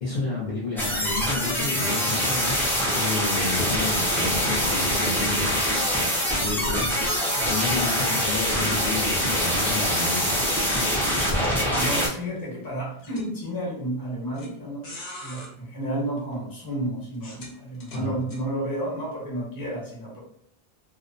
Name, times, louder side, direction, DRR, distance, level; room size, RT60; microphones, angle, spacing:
voice 1, 0.0-2.6 2.9-5.6 6.4-7.1 7.5-10.5 17.9-18.2, left 3 dB, 50° left, -7 dB, 0.7 m, -30 dB
sound 1, 0.8-12.1, equal, 5° left, 0.3 m, -24 dB
sound 2, 2.1-3.0 5.4-7.7 8.1-8.3 8.9-9.0 10.0-11.5 12.4-12.5 13.0-13.3 14.3-14.5 14.8-15.5 16.2-16.3 17.1-18.4, left 1 dB, 85° left, 1.0 m, -41 dB
voice 2, 11.7-20.2, right 1 dB, 20° left, -6 dB, 0.9 m, -31 dB
2.5 x 2.0 x 2.5 m, 0.67 s
omnidirectional pair, 1.0 m